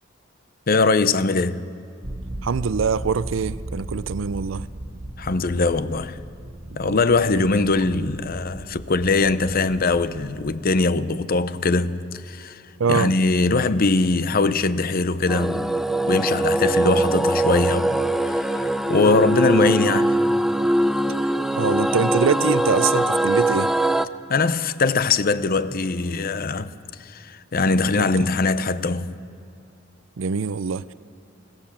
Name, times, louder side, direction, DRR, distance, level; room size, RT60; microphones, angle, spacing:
voice 1, 0.7-1.7 5.2-6.2 6.8-12.6 12.9-15.7 16.0-20.2 24.3-26.7 27.0-29.1, left 3 dB, 50° left, 0.7 m, -21 dB
sound 1, 2.0-10.6, right 1 dB, 45° right, 1.3 m, -37 dB
voice 2, 2.4-4.7 6.8-7.0 7.4-7.5 12.8-13.1 19.1-19.2 21.2-21.3 21.6-23.7 28.0-28.3 30.2-30.9, right 6 dB, 75° right, 0.5 m, -24 dB
sound 2, 15.3-24.0, right 1 dB, ahead, 0.5 m, -22 dB
25.5 x 18.0 x 7.4 m
head